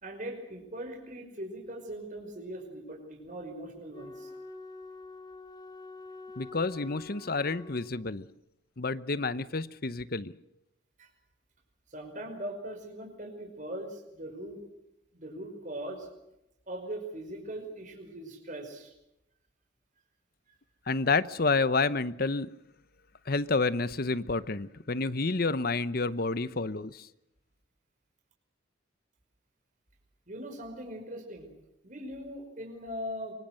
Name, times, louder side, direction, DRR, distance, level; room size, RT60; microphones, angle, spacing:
voice 1, 0.0-4.3 11.0-11.1 11.9-14.6 15.1-16.1 16.7-18.9 20.5-20.6 30.3-31.5 31.8-33.3, right 1 dB, 40° right, 2 dB, 5.3 m, -40 dB
Wind instrument woodwind instrument, 3.9-8.3, left 2 dB, 20° left, 1.8 m, -47 dB
voice 2, 6.4-8.3 8.8-10.3 20.9-22.5 23.3-27.1, left 3 dB, 50° left, 15 dB, 0.9 m, -29 dB
25.0 x 24.5 x 6.5 m, 0.86 s
head